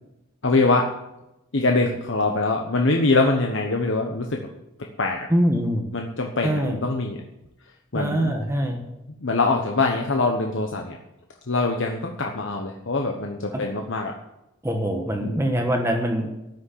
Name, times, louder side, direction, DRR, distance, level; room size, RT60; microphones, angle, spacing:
voice 1, 0.4-0.9 1.5-4.4 5.0-5.3 5.9-7.2 7.9-8.3 9.2-11.0 11.5-14.1 15.2-15.7, left 3 dB, 60° left, 2 dB, 1.1 m, -23 dB
voice 2, 5.3-5.9 6.4-6.8 7.9-8.8 14.6-16.3, equal, 15° right, 3 dB, 1.4 m, -23 dB
13.0 x 6.4 x 9.8 m, 0.92 s
head